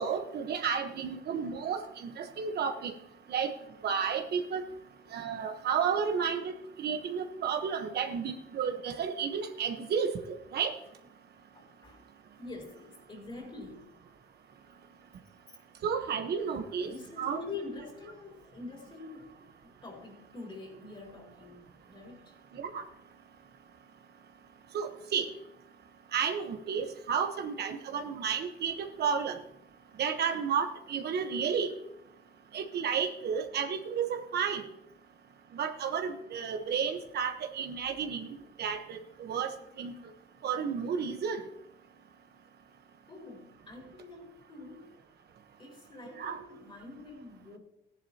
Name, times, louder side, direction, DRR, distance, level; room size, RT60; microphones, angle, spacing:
voice 1, 0.0-2.9 3.3-3.5 3.8-4.6 5.1-6.5 6.8-10.7 15.8-16.9 17.2-17.4 22.5-22.8 24.7-25.3 26.1-29.4 30.0-31.7 32.5-34.6 35.5-39.9 40.4-41.4 46.2-46.4, right 6 dB, 70° right, 6 dB, 1.2 m, -32 dB
voice 2, 11.5-12.0 12.4-13.9 16.8-19.4 19.8-22.3 43.1-44.9 45.6-47.6, left 3 dB, 30° left, 0 dB, 3.9 m, -46 dB
15.5 x 10.5 x 2.9 m, 0.82 s
cardioid pair, 110°, 18 cm